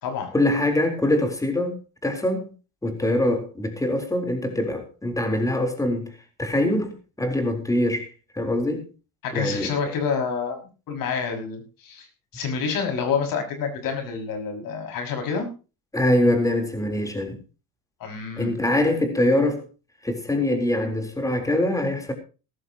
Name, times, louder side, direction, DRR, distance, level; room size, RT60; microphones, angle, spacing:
voice 1, 0.3-2.5 2.8-6.1 6.4-8.1 8.4-8.9 9.3-9.9 15.9-17.4 18.4-19.7 20.0-22.1, left 1 dB, 10° left, 3.7 m, -23 dB
voice 2, 9.2-10.6 10.9-12.1 12.3-15.5 18.0-18.7, left 6 dB, 65° left, 6.1 m, -28 dB
18.0 x 14.0 x 3.0 m
cardioid pair, 120°, 36 cm